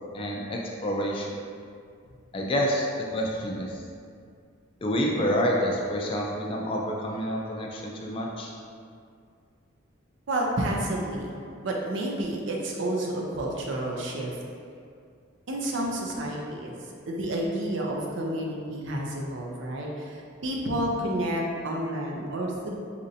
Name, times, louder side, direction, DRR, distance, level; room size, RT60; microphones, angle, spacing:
voice 1, 0.1-1.3 2.3-3.8 4.8-8.5, equal, 25° left, -1 dB, 0.3 m, -28 dB
voice 2, 10.3-11.4 11.6-14.4 15.5-16.7 17.0-22.7, right 1 dB, 65° right, -1 dB, 0.5 m, -30 dB
4.2 x 2.5 x 2.6 m, 2.3 s
head